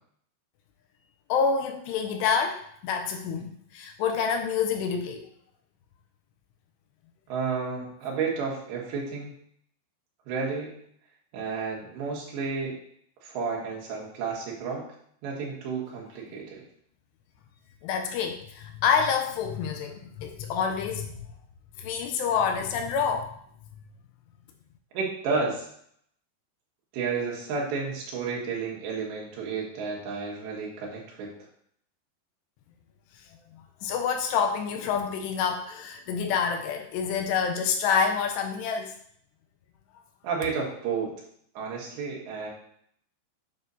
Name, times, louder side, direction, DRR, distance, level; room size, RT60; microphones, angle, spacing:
voice 1, 1.3-5.3 17.8-21.3 21.8-23.4 33.5-38.9, left 6 dB, 85° left, 5 dB, 2.6 m, -27 dB
voice 2, 7.3-9.3 10.3-10.7 11.3-12.8 13.2-14.8 15.2-16.6 24.9-25.7 26.9-31.3 40.2-41.1 41.6-42.5, right 5 dB, 75° right, -3 dB, 3.8 m, -31 dB
8.6 x 7.0 x 2.7 m, 0.67 s
omnidirectional pair, 5.1 m